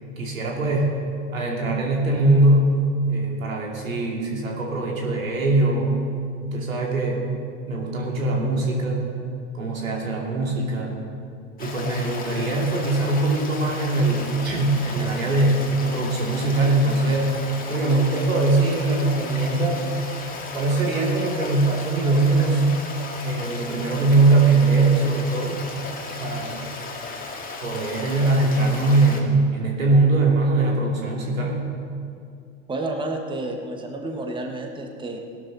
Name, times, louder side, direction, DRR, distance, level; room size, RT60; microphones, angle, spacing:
voice 1, 0.2-1.0 1.3-2.7 3.1-6.0 6.4-7.2 7.7-9.1 9.5-11.0 11.6-19.8 20.5-22.7 23.2-25.7 26.2-26.6 27.6-31.7, right 2 dB, 90° right, -2 dB, 2.8 m, -21 dB
Stream, 11.6-29.2, left 3 dB, 20° left, 2.0 m, -35 dB
voice 2, 32.7-35.2, right 2 dB, 10° right, 2 dB, 1.4 m, -30 dB
17.5 x 12.0 x 4.0 m, 2.3 s
hypercardioid pair, 95°, 39 cm